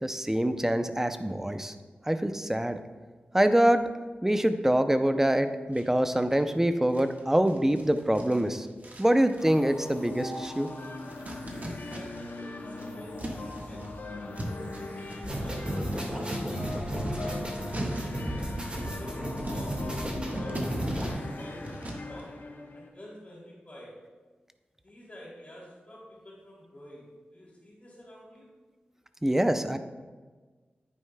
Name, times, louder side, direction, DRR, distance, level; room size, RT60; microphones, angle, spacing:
voice 1, 0.0-1.7 2.1-2.8 3.3-3.9 4.2-8.7 9.0-10.7 29.2-29.8, right 1 dB, 10° right, 9 dB, 0.5 m, -25 dB
sound 1, 5.7-6.5 6.9-12.4 12.6-22.2, right 1 dB, 50° right, 1.4 m, -41 dB
sound 2, 9.4-22.9, left 2 dB, 65° left, 0.8 m, -40 dB
voice 2, 11.9-18.5 19.0-20.7 21.1-22.3 22.7-23.9 24.8-28.5, left 1 dB, 40° left, -8 dB, 2.7 m, -48 dB
sound 3, 15.2-21.1, right 1 dB, 30° right, 1.8 m, -33 dB
9.7 x 8.8 x 2.3 m, 1.4 s
wide cardioid pair, 70°, 4 cm